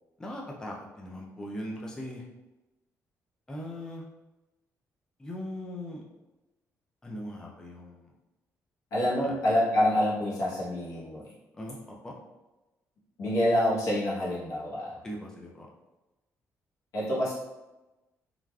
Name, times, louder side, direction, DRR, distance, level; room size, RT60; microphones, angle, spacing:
voice 1, 0.2-2.2 3.5-4.1 5.2-6.0 7.0-8.1 9.2-9.3 11.5-11.8 12.0-12.2 15.0-15.7, left 1 dB, 10° left, -2 dB, 0.3 m, -39 dB
voice 2, 8.9-11.2 13.2-15.0 16.9-17.3, left 1 dB, 75° left, -6 dB, 1.0 m, -27 dB
3.3 x 2.4 x 2.2 m, 1.0 s
cardioid pair, 155°, 6 cm